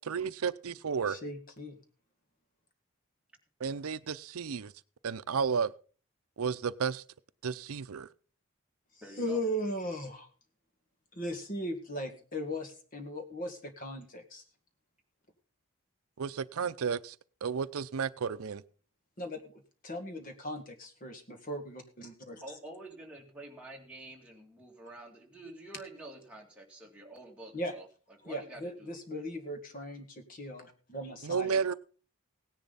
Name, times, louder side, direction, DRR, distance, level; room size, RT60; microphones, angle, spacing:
voice 1, 0.1-1.2 3.6-4.7 5.0-5.7 6.4-7.0 7.4-8.1 16.2-17.2 17.4-18.6 31.2-31.7, right 6 dB, 80° right, 0.5 m, -32 dB
voice 2, 1.1-1.8 9.2-10.3 11.1-14.4 19.2-22.4 27.5-27.7 28.3-31.6, equal, 40° left, 1.9 m, -38 dB
voice 3, 9.0-9.4 22.4-27.9 28.2-29.2, right 2 dB, 5° right, 2.4 m, -48 dB
17.5 x 10.5 x 4.1 m
head